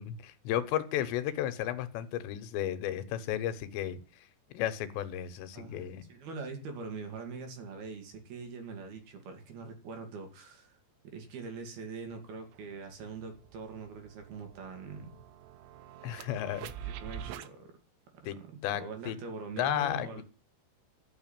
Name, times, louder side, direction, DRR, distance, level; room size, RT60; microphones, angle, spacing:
voice 1, 0.0-4.0 4.5-6.1 16.0-16.7 18.2-18.4 18.6-19.2 19.6-20.2, left 11 dB, 90° left, 11 dB, 3.4 m, -33 dB
voice 2, 5.5-10.8 11.1-15.1 16.8-17.7 18.4-20.2, right 4 dB, 65° right, 5 dB, 4.3 m, -43 dB
sound 1, 12.1-12.2 12.5-17.5, right 10 dB, 90° right, 3.2 m, -46 dB
12.0 x 6.8 x 9.0 m, 0.35 s
omnidirectional pair, 4.9 m